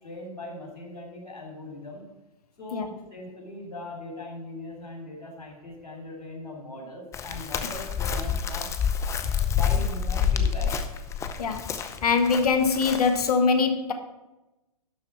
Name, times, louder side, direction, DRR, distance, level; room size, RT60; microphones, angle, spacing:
voice 1, 0.0-2.0 2.6-8.7 9.5-10.7, left 1 dB, 90° left, 0 dB, 3.7 m, -39 dB
Chirp tweet, 7.1-13.3, left 7 dB, 15° left, 0.6 m, -28 dB
voice 2, 11.4-11.7 12.0-13.9, left 5 dB, 75° left, 8 dB, 1.3 m, -23 dB
11.5 x 4.3 x 7.2 m, 1.0 s
hypercardioid pair, 125°, 20 cm